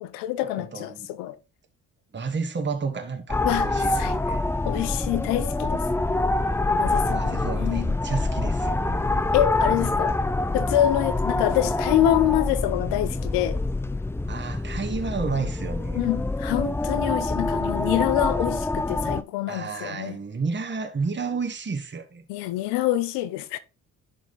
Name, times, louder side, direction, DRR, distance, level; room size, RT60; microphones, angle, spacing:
voice 1, 0.0-1.3 3.4-4.2 4.7-5.8 6.8-7.9 9.3-10.2 10.5-13.6 16.0-20.2 22.3-23.6, left 13 dB, 75° left, 0.6 m, -26 dB
voice 2, 0.6-1.1 2.1-4.4 6.9-9.1 14.3-16.1 17.2-17.3 19.5-22.3, right 4 dB, 25° right, 1.3 m, -31 dB
sound 1, 3.3-19.2, left 2 dB, 5° left, 0.4 m, -26 dB
10.5 x 3.5 x 4.0 m
hypercardioid pair, 45°, 42 cm